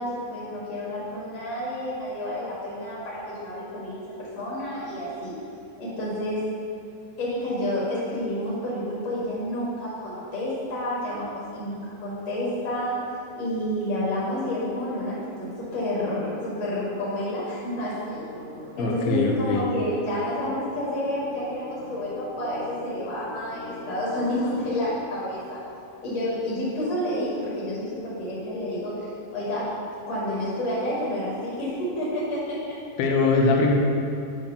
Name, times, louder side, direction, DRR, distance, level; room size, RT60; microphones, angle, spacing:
voice 1, 0.0-5.3 5.8-6.4 7.2-13.0 13.4-18.2 18.8-25.6 26.0-29.7 30.1-32.8, left 1 dB, 50° left, -8 dB, 2.6 m, -29 dB
sound 1, 18.1-25.0, equal, 25° left, 1.4 m, -41 dB
voice 2, 18.8-19.7 33.0-33.7, left 3 dB, 80° left, 0 dB, 2.6 m, -21 dB
9.6 x 3.5 x 6.8 m, 2.6 s
omnidirectional pair, 4.4 m